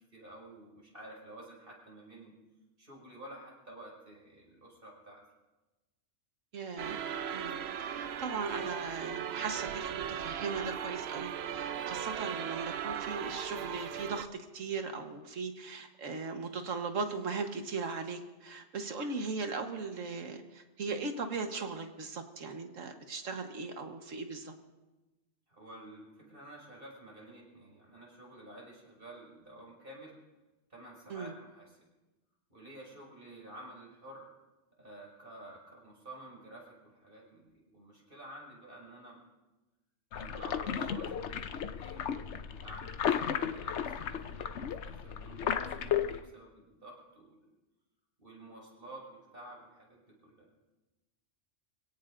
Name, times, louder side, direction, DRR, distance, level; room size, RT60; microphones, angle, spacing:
voice 1, 0.1-2.4 2.8-5.2 25.5-30.2 30.7-31.8 32.5-34.3 34.8-39.2 40.1-47.5 48.2-50.5, right 1 dB, 45° right, -3 dB, 6.0 m, -51 dB
voice 2, 6.5-7.0 7.3-14.3 14.5-24.5 31.1-31.3, right 4 dB, 90° right, 5 dB, 1.7 m, -38 dB
sound 1, 6.8-14.2, right 8 dB, 60° right, 0.8 m, -38 dB
sound 2, 40.1-46.2, left 8 dB, 70° left, 1.0 m, -34 dB
26.5 x 17.5 x 2.6 m, 1.1 s
omnidirectional pair, 1.3 m